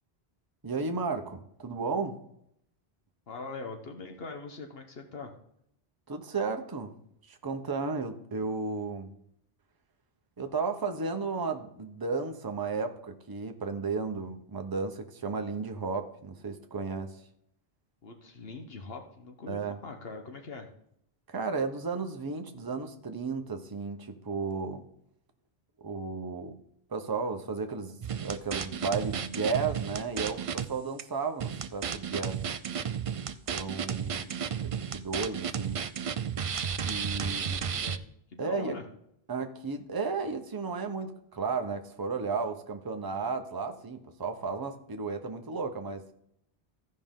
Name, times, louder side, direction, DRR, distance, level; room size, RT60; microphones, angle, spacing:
voice 1, 0.6-2.2 6.1-7.0 7.3-9.1 10.4-17.3 19.5-19.8 21.3-24.8 25.8-26.6 26.9-32.4 33.5-34.3 34.6-35.8 36.8-37.6 38.4-38.8 39.3-46.0, right 4 dB, 25° right, 5 dB, 0.8 m, -34 dB
voice 2, 3.3-5.3 18.0-20.7 37.2-38.0 38.3-38.8, left 3 dB, 65° left, 4 dB, 1.2 m, -42 dB
sound 1, 28.0-30.7 31.0-31.1 31.4-38.0, right 7 dB, 55° right, 0.4 m, -33 dB
15.0 x 5.3 x 3.7 m, 0.73 s
omnidirectional pair, 1.1 m